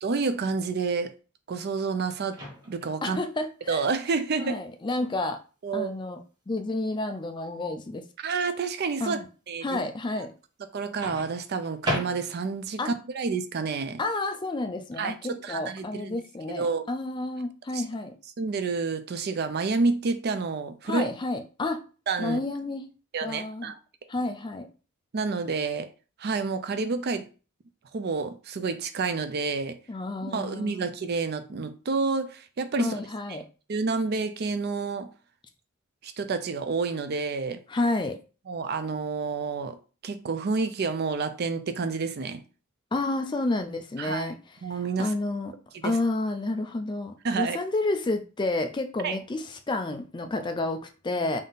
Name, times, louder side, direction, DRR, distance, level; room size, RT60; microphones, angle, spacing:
voice 1, 0.0-1.1 1.5-2.4 2.7-3.2 3.7-4.6 5.6-6.0 8.2-9.2 9.5-9.8 10.2-10.3 10.7-14.0 15.0-16.2 16.5-16.9 17.7-17.8 18.4-21.1 22.1-22.4 23.1-23.8 25.1-25.9 26.2-27.3 27.9-29.8 30.2-33.0 33.3-33.4 33.7-35.1 36.0-37.6 38.5-39.8 40.0-42.4 44.0-44.3 44.6-45.1 45.7-46.0 47.2-47.6 49.0-49.2, right 4 dB, 45° right, 0.4 m, -29 dB
Microwave oven, 2.3-3.0 5.0-5.2 11.0-12.6, left 1 dB, 20° right, 1.1 m, -34 dB
voice 2, 3.0-3.8 4.4-5.4 5.7-6.2 6.5-8.0 9.0-9.3 9.6-10.3 12.8-12.9 14.0-18.2 20.8-21.8 22.2-22.9 23.2-23.7 24.1-24.7 29.9-30.9 32.8-33.5 37.7-38.2 42.9-44.3 45.0-45.5 45.8-51.4, left 2 dB, 20° left, 0.4 m, -30 dB
3.7 x 2.7 x 3.9 m
head